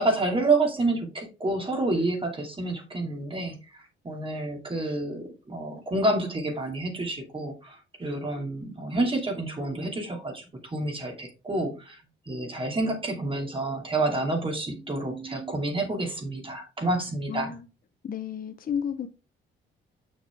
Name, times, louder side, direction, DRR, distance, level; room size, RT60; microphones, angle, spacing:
voice 1, 0.0-12.0 12.3-17.5, right 2 dB, 25° right, 2.7 m, -29 dB
voice 2, 17.3-17.7 18.0-19.1, left 8 dB, 45° left, 0.9 m, -32 dB
6.6 x 6.5 x 3.5 m
cardioid pair, 90°, 20 cm